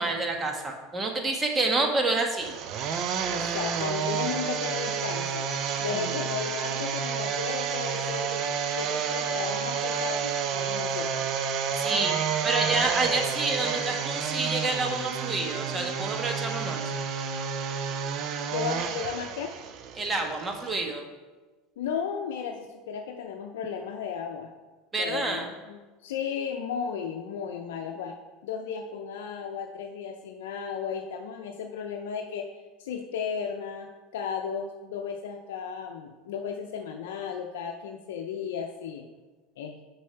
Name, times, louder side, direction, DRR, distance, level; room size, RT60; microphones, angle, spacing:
voice 1, 0.0-2.5 5.9-6.1 11.8-12.2 12.4-16.8 20.0-21.0 24.9-25.5, right 3 dB, 20° right, 3 dB, 1.3 m, -28 dB
sound 1, 2.4-20.7, right 7 dB, 50° right, 0.6 m, -30 dB
voice 2, 3.3-5.4 5.8-8.4 8.7-11.3 18.5-19.5 21.8-24.5 25.0-28.2 28.4-32.5 32.8-39.1 39.6-39.7, left 7 dB, 85° left, 2 dB, 0.5 m, -34 dB
6.2 x 4.7 x 5.7 m, 1.3 s
supercardioid pair, 110°, 0 cm